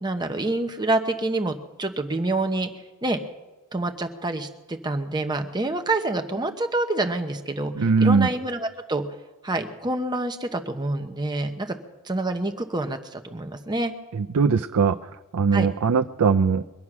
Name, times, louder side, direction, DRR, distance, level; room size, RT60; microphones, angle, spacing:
voice 1, 0.0-2.7 3.0-3.2 3.7-7.7 8.0-9.0 9.4-11.8 12.0-13.9 15.5-15.7, right 2 dB, 20° right, 6 dB, 1.0 m, -27 dB
voice 2, 7.8-8.3 14.1-15.0 15.3-16.6, right 5 dB, 85° right, 8 dB, 0.5 m, -20 dB
23.0 x 8.2 x 6.1 m, 1.1 s
head